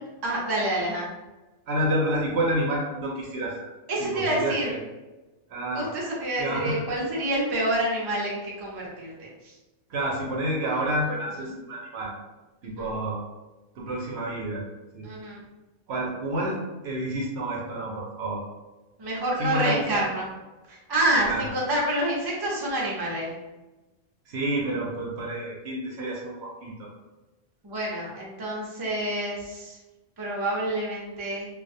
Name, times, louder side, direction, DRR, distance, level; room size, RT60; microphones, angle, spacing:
voice 1, 0.2-1.1 3.9-4.7 5.7-9.6 12.6-12.9 15.0-15.4 19.0-20.3 20.7-23.3 27.6-29.8 30.2-31.5, right 1 dB, 35° right, -4 dB, 0.4 m, -28 dB
voice 2, 1.7-3.7 4.0-4.8 5.5-5.9 6.4-6.8 9.9-12.2 12.6-13.3 13.7-14.6 14.9-15.1 15.9-18.4 19.4-20.0 21.2-21.5 24.3-26.9, right 1 dB, 65° right, -2 dB, 0.8 m, -29 dB
2.3 x 2.1 x 2.6 m, 1.1 s
omnidirectional pair, 1.3 m